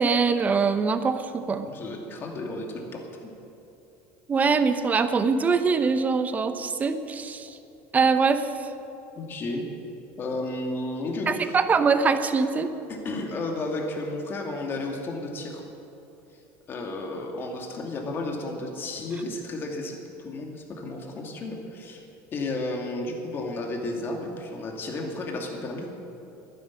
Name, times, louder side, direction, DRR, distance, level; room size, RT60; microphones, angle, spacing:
voice 1, 0.0-1.7 4.3-7.6 7.9-8.5 11.3-12.7, right 5 dB, 25° right, 10 dB, 0.9 m, -23 dB
voice 2, 1.7-3.3 9.2-9.6 10.2-11.6 12.9-15.6 16.7-22.0 22.3-25.9, left 2 dB, 35° left, 2 dB, 2.5 m, -33 dB
11.5 x 10.5 x 9.8 m, 2.8 s
supercardioid pair, 120°, 6 cm